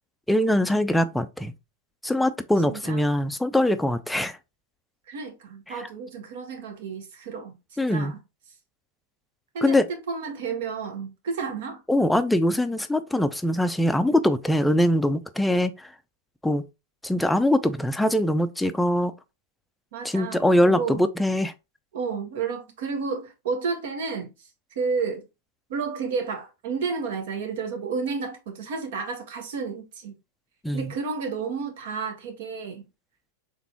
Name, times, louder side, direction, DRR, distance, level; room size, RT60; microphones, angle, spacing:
voice 1, 0.3-1.5 2.0-4.4 5.7-5.8 7.8-8.1 9.6-9.9 11.9-15.9 16.4-16.6 17.0-19.1 20.0-21.5 30.6-30.9, left 1 dB, 5° left, 0.5 m, -22 dB
voice 2, 2.7-3.0 5.1-7.6 7.9-8.2 9.5-11.8 19.9-21.0 21.9-24.5 24.7-25.2 25.7-30.2 30.7-32.9, right 5 dB, 60° right, 1.4 m, -31 dB
4.0 x 3.4 x 2.9 m
figure-of-eight pair, 95°, 0 cm